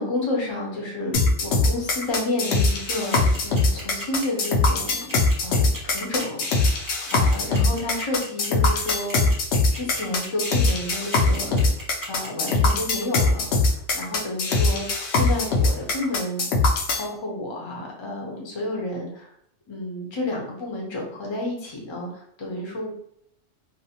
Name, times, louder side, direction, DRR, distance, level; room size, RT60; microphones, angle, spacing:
voice 1, 0.0-5.1 5.4-9.3 9.7-11.7 12.0-16.4 17.0-19.3 19.7-22.9, left 2 dB, 30° left, -1 dB, 0.5 m, -31 dB
sound 1, 1.1-17.1, left 3 dB, 70° left, 0.8 m, -21 dB
sound 2, 2.7-12.7, right 1 dB, 25° right, 0.5 m, -38 dB
2.5 x 2.1 x 2.8 m, 0.71 s
omnidirectional pair, 1.3 m